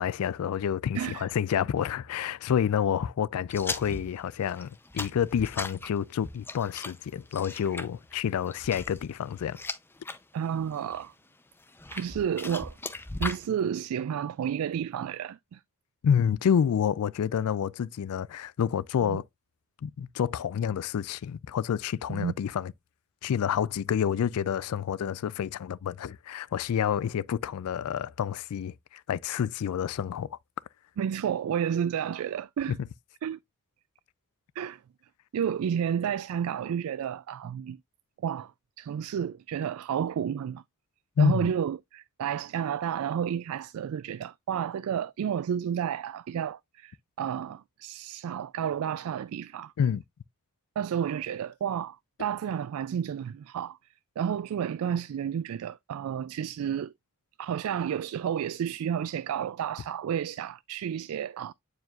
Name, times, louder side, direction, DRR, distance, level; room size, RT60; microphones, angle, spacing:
voice 1, 0.0-9.6 16.0-19.2 19.8-22.7 23.2-30.4 32.7-32.8 41.2-41.5 49.8-50.0, left 8 dB, 75° left, 0.3 m, -28 dB
voice 2, 0.9-1.3 10.3-11.1 11.9-12.8 13.2-15.6 19.0-19.2 22.1-22.3 31.0-32.8 33.2-33.4 34.6-34.8 35.3-37.8 38.2-38.5 38.8-40.6 41.2-49.7 50.8-53.8 54.2-56.9 57.4-61.5, right 8 dB, 70° right, 0.3 m, -31 dB
sound 1, 3.5-10.2 10.6-11.1 11.6-13.5, left 3 dB, 10° left, 0.5 m, -38 dB
9.2 x 4.8 x 2.4 m
head